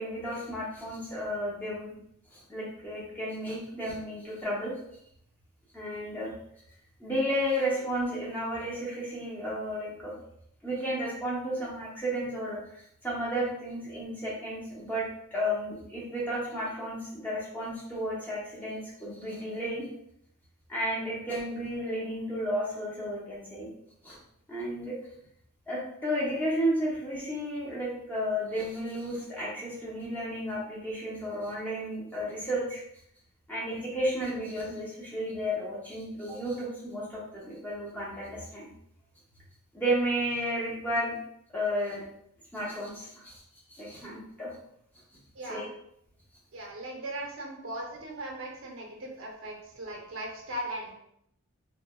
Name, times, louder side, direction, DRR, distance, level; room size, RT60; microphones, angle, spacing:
voice 1, 0.0-1.9 2.3-4.7 5.7-6.3 7.0-10.1 10.6-15.1 15.3-19.9 20.7-23.7 24.0-24.2 24.5-24.9 25.7-32.8 33.5-38.7 39.7-41.1 41.5-42.0 42.5-43.4 43.7-44.5 45.5-45.7, equal, 10° left, -6 dB, 0.7 m, -32 dB
voice 2, 46.5-50.9, right 1 dB, 65° right, -1 dB, 0.7 m, -38 dB
3.1 x 2.2 x 2.2 m, 0.73 s
head